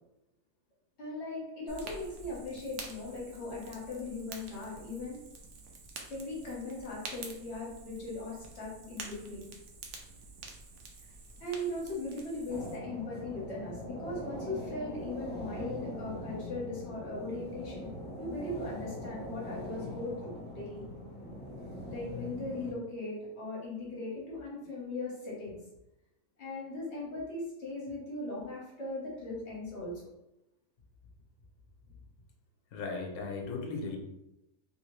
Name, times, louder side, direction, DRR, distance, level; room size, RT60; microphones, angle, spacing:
voice 1, 1.0-5.2 6.1-9.5 11.4-17.9 18.2-20.9 21.9-25.6 26.4-30.1, left 2 dB, 55° left, -5 dB, 1.3 m, -39 dB
Fire, 1.7-12.8, right 3 dB, 65° right, 0.8 m, -48 dB
sound 1, 12.5-22.7, equal, 15° left, 0.4 m, -42 dB
voice 2, 32.7-34.0, left 4 dB, 90° left, 1 dB, 1.1 m, -37 dB
3.2 x 2.7 x 3.0 m, 0.91 s
omnidirectional pair, 1.5 m